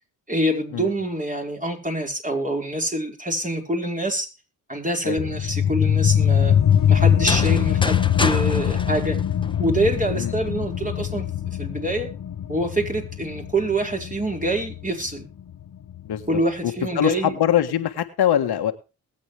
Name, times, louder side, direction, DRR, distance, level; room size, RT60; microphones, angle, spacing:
voice 1, 0.3-4.3 4.7-6.6 6.9-9.2 9.6-12.1 12.5-15.3 16.3-17.4, right 1 dB, 20° right, 1 dB, 5.2 m, -26 dB
sound 1, 5.2-16.3, left 9 dB, 60° left, 1.2 m, -23 dB
sound 2, 7.1-10.0, left 2 dB, 15° left, 1.4 m, -29 dB
voice 2, 16.0-18.7, left 10 dB, 85° left, 6 dB, 1.7 m, -23 dB
21.0 x 8.4 x 3.4 m, 0.31 s
cardioid pair, 60°, 38 cm